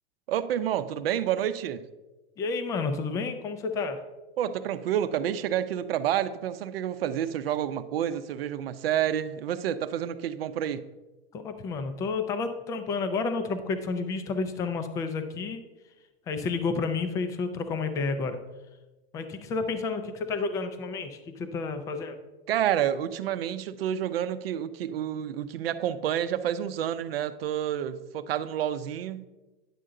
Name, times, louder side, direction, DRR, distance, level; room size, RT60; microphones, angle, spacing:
voice 1, 0.3-1.9 4.4-10.9 22.5-29.3, right 10 dB, 75° right, 12 dB, 0.7 m, -29 dB
voice 2, 2.4-4.0 11.3-15.6 16.3-18.4 19.1-22.2, left 4 dB, 10° left, 9 dB, 0.3 m, -30 dB
10.0 x 6.6 x 3.7 m, 1.1 s
supercardioid pair, 155°, 30 cm